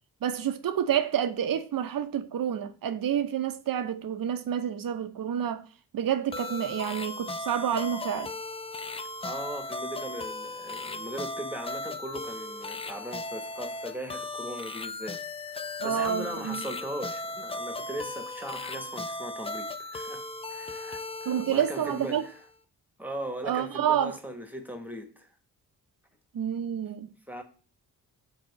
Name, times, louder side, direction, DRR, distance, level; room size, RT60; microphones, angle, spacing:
voice 1, 0.2-5.6 5.9-8.3 15.8-16.6 21.3-22.3 23.4-24.2 26.3-27.1, right 9 dB, 50° right, 0.8 m, -29 dB
sound 1, 6.3-22.5, left 2 dB, 15° left, 0.4 m, -37 dB
voice 2, 9.2-15.2 15.6-20.2 20.5-22.4 23.0-25.3 27.3-27.4, equal, 5° right, 1.3 m, -39 dB
4.7 x 3.9 x 5.2 m
hypercardioid pair, 40°, 45 cm